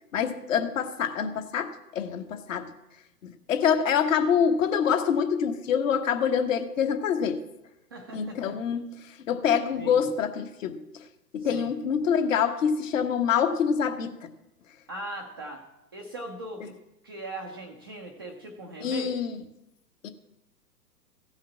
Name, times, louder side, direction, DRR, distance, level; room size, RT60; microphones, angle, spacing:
voice 1, 0.1-2.7 3.2-7.4 8.1-8.8 9.3-10.8 11.3-14.1 18.8-19.4 20.0-20.1, left 7 dB, 50° left, 6 dB, 1.3 m, -26 dB
voice 2, 7.9-8.6 9.8-10.1 11.4-11.7 14.9-15.6 15.9-16.7 17.0-19.1, right 2 dB, 15° right, -2 dB, 0.4 m, -39 dB
15.5 x 5.7 x 7.3 m, 0.91 s
figure-of-eight pair, 120°, 49 cm